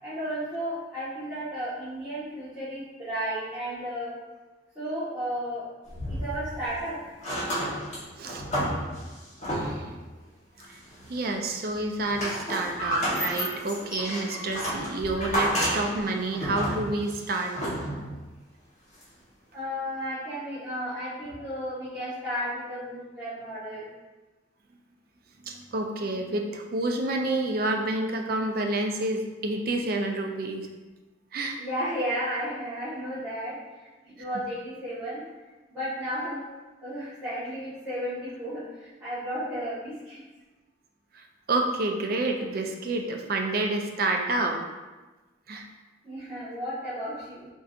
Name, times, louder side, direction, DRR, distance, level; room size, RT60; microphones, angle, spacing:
voice 1, 0.0-4.2 4.7-5.6 6.1-7.0 19.5-23.9 31.6-35.2 35.7-36.4 36.8-40.2 46.0-47.5, equal, 10° right, -16 dB, 1.4 m, -33 dB
sound 1, 5.9-6.8 7.1-10.0 10.6-11.3 11.7-18.2 19.0-19.1, equal, 35° left, 1.1 m, -31 dB
voice 2, 9.5-9.9 10.7-10.8 11.1-17.6 25.4-30.7 31.3-31.6 41.1-44.6 45.5-45.7, right 2 dB, 50° right, 2 dB, 0.4 m, -29 dB
4.5 x 3.9 x 2.4 m, 1.2 s
head